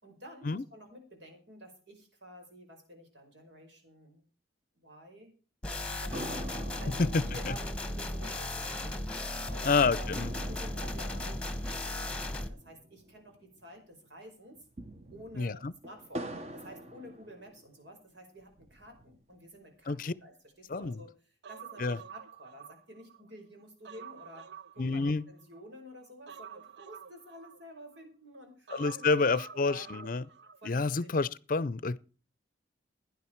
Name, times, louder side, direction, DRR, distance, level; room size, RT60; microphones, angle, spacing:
voice 1, 0.0-4.2 4.7-5.3 5.9-14.7 15.1-24.5 24.7-30.1 30.6-31.1, equal, 85° right, 5.3 m, -51 dB
sound 1, 5.6-12.5, left 1 dB, 5° left, 1.3 m, -36 dB
sound 2, 6.1-13.7 14.0-14.1 14.5-17.9 18.4-19.4, right 1 dB, 35° right, 1.1 m, -46 dB
voice 2, 7.0-7.5 9.6-10.3 15.3-15.7 19.9-20.1 20.7-21.0 21.8-22.0 24.8-25.2 28.7-30.2 30.6-32.0, left 4 dB, 50° left, 0.5 m, -29 dB
Human voice, 21.4-23.2 23.6-25.6 26.3-28.0 28.7-30.6 30.9-31.0, right 8 dB, 70° right, 0.6 m, -49 dB
16.5 x 10.5 x 4.6 m
head